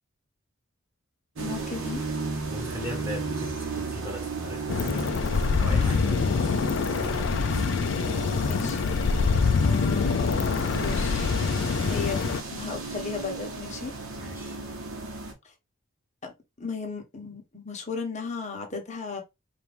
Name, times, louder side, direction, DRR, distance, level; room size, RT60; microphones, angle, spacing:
voice 1, 1.4-2.0 8.4-9.0 9.6-10.5 10.8-11.3 11.9-12.2 12.5-13.9 16.2-16.3 16.6-19.2, left 5 dB, 35° left, 1.0 m, -35 dB
sound 1, 1.4-15.3, right 3 dB, 80° right, 1.1 m, -35 dB
voice 2, 2.5-5.1 5.6-6.4 11.8-12.0 14.2-14.6, equal, 10° right, 1.5 m, -38 dB
sound 2, 4.7-12.4, left 5 dB, 60° left, 0.4 m, -25 dB
4.4 x 2.6 x 3.4 m
head